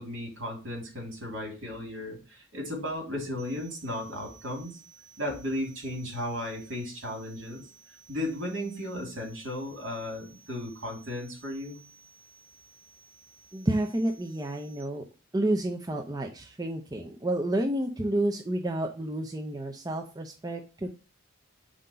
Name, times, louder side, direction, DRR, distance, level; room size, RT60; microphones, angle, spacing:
voice 1, 0.0-4.8 5.2-7.6 8.1-11.8, left 1 dB, 60° right, 1 dB, 2.7 m, -35 dB
sound 1, 3.4-14.8, right 6 dB, 45° left, 1.8 m, -56 dB
voice 2, 13.5-15.0 15.3-21.0, right 1 dB, 15° right, 2 dB, 0.5 m, -30 dB
5.1 x 3.8 x 5.6 m, 0.34 s
head